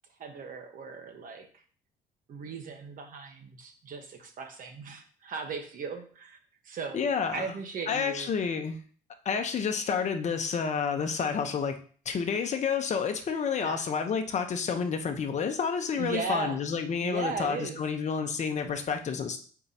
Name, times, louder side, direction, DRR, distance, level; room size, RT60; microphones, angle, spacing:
voice 1, 0.2-1.5 2.3-6.4 6.6-7.0 7.3-8.3 13.6-13.9 15.9-16.6 17.0-17.8, right 5 dB, 55° right, 4 dB, 1.2 m, -37 dB
voice 2, 6.9-7.5 7.9-8.8 9.2-11.7 12.0-19.4, left 6 dB, 45° left, 6 dB, 0.9 m, -29 dB
4.6 x 3.8 x 5.7 m, 0.43 s
cardioid pair, 110°, 17 cm